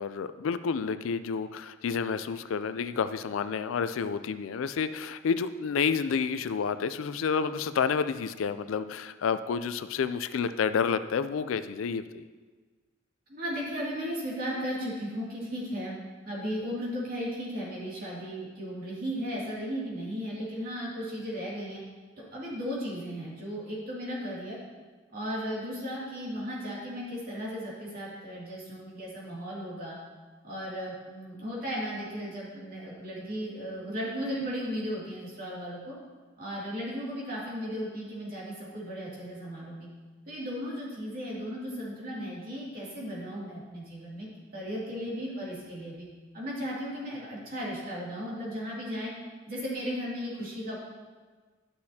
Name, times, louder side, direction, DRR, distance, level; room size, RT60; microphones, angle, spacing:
voice 1, 0.0-12.2, left 6 dB, 80° left, 12 dB, 0.4 m, -30 dB
voice 2, 13.3-16.0 16.2-21.8 22.3-24.6 25.1-30.0 30.4-36.0 36.4-39.9 40.3-46.1 46.3-49.1 49.5-50.8, equal, 45° right, -6 dB, 2.6 m, -35 dB
11.5 x 6.4 x 2.8 m, 1.4 s
head